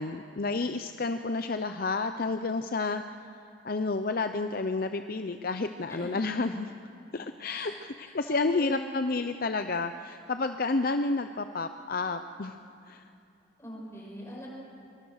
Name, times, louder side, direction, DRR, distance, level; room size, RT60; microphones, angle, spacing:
voice 1, 0.0-3.0 3.6-6.7 7.1-12.6 12.9-13.0, left 3 dB, 50° left, 8 dB, 0.6 m, -30 dB
voice 2, 7.5-7.8 8.0-8.9 13.6-14.5, equal, 15° left, -4 dB, 7.1 m, -42 dB
26.0 x 24.5 x 6.5 m, 2.5 s
head